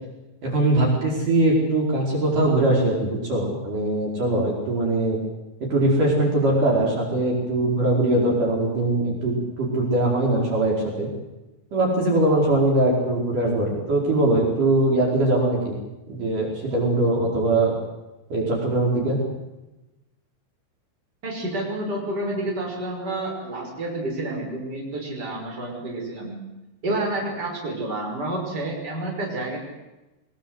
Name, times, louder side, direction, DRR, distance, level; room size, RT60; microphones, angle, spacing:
voice 1, 0.4-5.2 5.7-11.1 11.7-15.8 16.1-17.8 18.3-19.2, right 2 dB, 50° right, -2 dB, 6.3 m, -21 dB
voice 2, 21.2-26.4 26.8-29.6, right 2 dB, 20° right, -1 dB, 6.2 m, -29 dB
23.0 x 21.5 x 8.1 m, 1.0 s
omnidirectional pair, 4.8 m